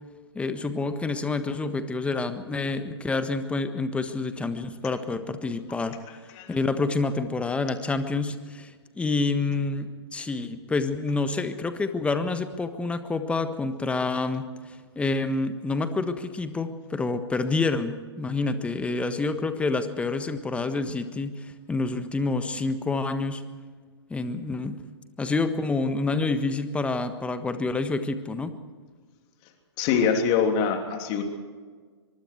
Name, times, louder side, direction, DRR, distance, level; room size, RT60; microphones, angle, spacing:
voice 1, 0.3-6.0 6.5-8.7 9.0-14.5 14.9-23.4 24.1-24.8 25.2-28.6, left 3 dB, 10° left, 9 dB, 1.4 m, -28 dB
voice 2, 29.8-31.2, left 6 dB, 35° left, 4 dB, 3.1 m, -24 dB
24.0 x 23.5 x 4.6 m, 1.5 s
figure-of-eight pair, 120°, 15 cm